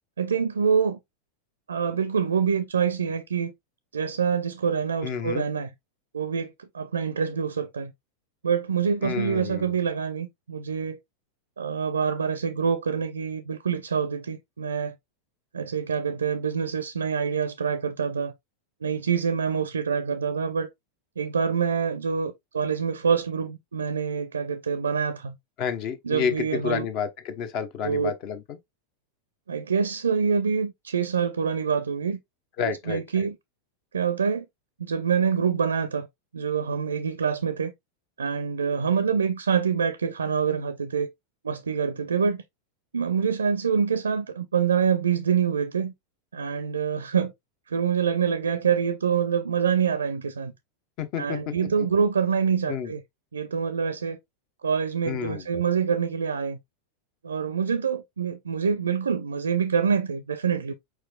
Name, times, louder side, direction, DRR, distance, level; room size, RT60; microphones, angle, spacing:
voice 1, 0.2-1.0 1.7-3.5 3.9-5.7 6.1-7.9 8.4-11.0 11.6-14.9 15.5-18.3 18.8-20.7 21.2-25.4 26.0-26.9 27.8-28.1 29.5-32.2 32.6-33.4 33.9-34.5 34.8-36.1 36.3-37.7 38.2-41.1 41.4-42.4 42.9-45.9 46.3-47.3 47.7-50.5 51.2-53.0 53.3-54.2 54.6-56.6 57.2-60.7, right 6 dB, 70° right, 0.4 m, -26 dB
voice 2, 5.0-5.4 9.0-9.8 25.6-28.6 32.6-33.0 51.0-51.4 52.7-52.9 55.1-55.5, left 7 dB, 40° left, 0.9 m, -30 dB
4.7 x 4.7 x 2.3 m
figure-of-eight pair, 90°, 0 cm